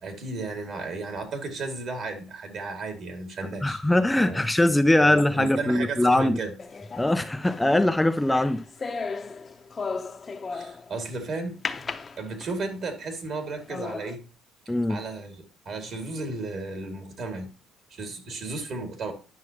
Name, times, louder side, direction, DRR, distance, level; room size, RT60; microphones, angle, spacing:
voice 1, 0.0-3.8 4.2-4.4 5.0-6.5 10.5-11.6 12.2-14.2 14.9-17.5 17.9-19.1, right 3 dB, 50° right, 2.2 m, -34 dB
voice 2, 3.6-6.4 7.0-8.6 14.7-15.0, left 1 dB, 10° left, 0.3 m, -21 dB
sound 1, 6.6-11.0 11.6-12.7 13.2-13.3 13.7-14.1, left 4 dB, 25° left, 0.7 m, -35 dB
9.5 x 6.0 x 2.9 m
cardioid pair, 115°, 0 cm